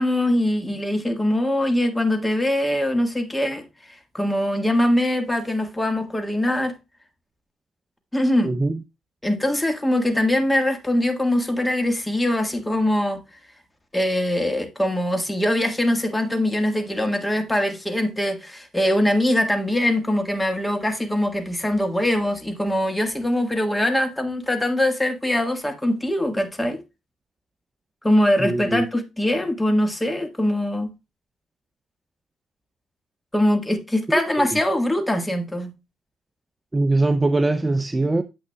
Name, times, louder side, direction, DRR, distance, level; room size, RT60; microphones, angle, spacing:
voice 1, 0.0-3.6 4.1-6.7 8.1-8.5 9.2-13.2 13.9-26.8 28.0-30.9 33.3-35.7, left 1 dB, 10° left, 1.5 m, -22 dB
voice 2, 8.4-8.8 28.4-28.9 34.4-34.6 36.7-38.2, right 2 dB, 20° right, 0.5 m, -22 dB
9.0 x 7.9 x 2.2 m
cardioid pair, 90°, 0 cm